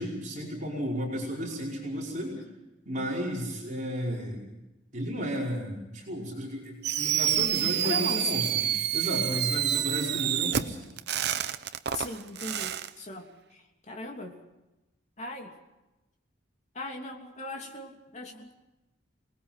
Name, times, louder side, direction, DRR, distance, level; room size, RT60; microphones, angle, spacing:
voice 1, 0.0-2.4 2.8-4.4 4.9-8.7 8.9-10.8, equal, 40° right, -3 dB, 5.1 m, -33 dB
Fireworks, 6.8-12.9, right 10 dB, 60° right, 0.8 m, -28 dB
voice 2, 7.8-8.5 11.9-14.4 15.2-15.6 16.7-18.5, left 2 dB, 40° left, 1 dB, 3.1 m, -38 dB
27.5 x 20.0 x 5.8 m, 1.0 s
head